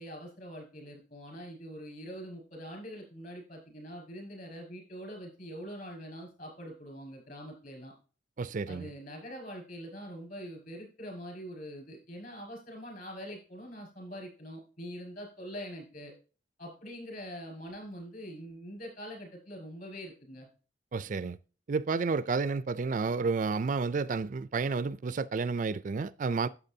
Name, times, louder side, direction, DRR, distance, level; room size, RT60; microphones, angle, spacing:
voice 1, 0.0-7.9 8.7-16.1 16.6-20.5, equal, 45° left, 5.6 m, -44 dB
voice 2, 8.4-8.9 20.9-21.4 21.7-26.5, right 4 dB, 40° right, 0.4 m, -31 dB
12.0 x 8.1 x 2.7 m
head